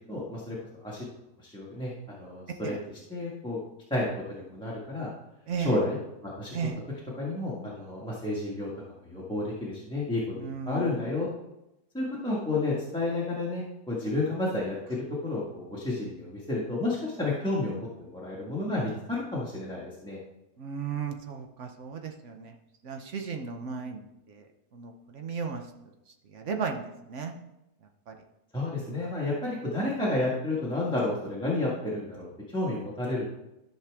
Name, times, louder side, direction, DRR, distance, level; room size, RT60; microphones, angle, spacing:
voice 1, 0.1-0.6 0.8-1.0 1.4-2.7 3.1-3.6 3.9-5.1 5.6-6.0 6.2-6.5 7.2-8.7 9.0-11.3 11.9-20.2 28.5-33.3, left 2 dB, 5° left, -7 dB, 1.6 m, -31 dB
voice 2, 5.5-5.8 6.5-6.8 10.3-11.0 20.6-22.5 22.8-24.5 24.7-25.6 26.3-27.3 28.1-28.2 29.0-29.1, right 5 dB, 50° right, 5 dB, 1.1 m, -35 dB
13.0 x 5.9 x 3.6 m, 0.91 s
omnidirectional pair, 1.8 m